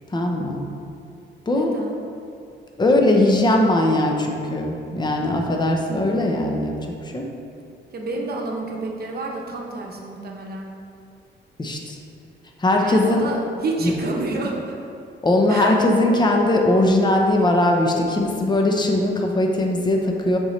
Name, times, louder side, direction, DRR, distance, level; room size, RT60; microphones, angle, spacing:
voice 1, 0.1-0.7 1.5-1.7 2.8-6.7 7.0-7.3 11.6-12.0 12.6-13.3 13.8-13.9 15.2-20.4, left 1 dB, 20° left, 1 dB, 0.7 m, -20 dB
voice 2, 1.5-2.0 7.9-10.7 12.7-14.8 15.5-15.8, right 2 dB, 50° right, 0 dB, 0.9 m, -29 dB
6.8 x 5.2 x 3.2 m, 2.5 s
cardioid pair, 125°, 20 cm